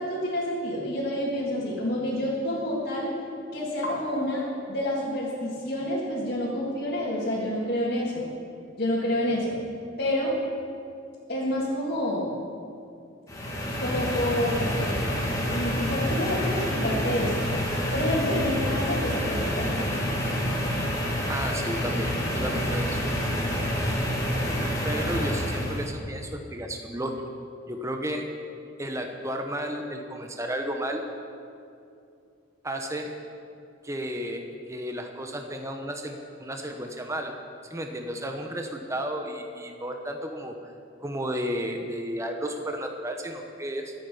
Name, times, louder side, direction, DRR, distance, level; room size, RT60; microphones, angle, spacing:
voice 1, 0.0-3.1 3.5-8.3 8.8-9.6 10.0-10.4 11.3-12.4 13.8-15.0 15.5-17.5 17.9-19.8, left 1 dB, 50° left, -7 dB, 2.6 m, -28 dB
sound 1, 13.3-25.9, equal, 15° left, 2.5 m, -28 dB
voice 2, 21.3-23.0 24.8-27.2 27.7-28.3 28.8-31.0 32.6-33.1 33.8-34.4 34.7-37.3 37.7-40.7 41.0-43.9, equal, 15° right, 3 dB, 0.9 m, -33 dB
23.5 x 9.1 x 5.5 m, 2.5 s
head